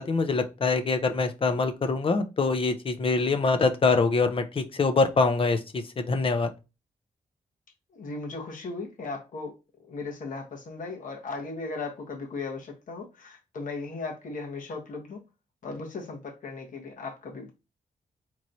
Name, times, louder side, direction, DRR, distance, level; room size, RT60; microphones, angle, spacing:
voice 1, 0.0-6.5, left 4 dB, 40° left, 8 dB, 0.6 m, -24 dB
voice 2, 7.9-9.5 9.8-15.2 15.6-17.5, left 3 dB, 65° left, 1 dB, 1.2 m, -37 dB
4.5 x 3.0 x 2.6 m, 0.28 s
wide cardioid pair, 115°, 14 cm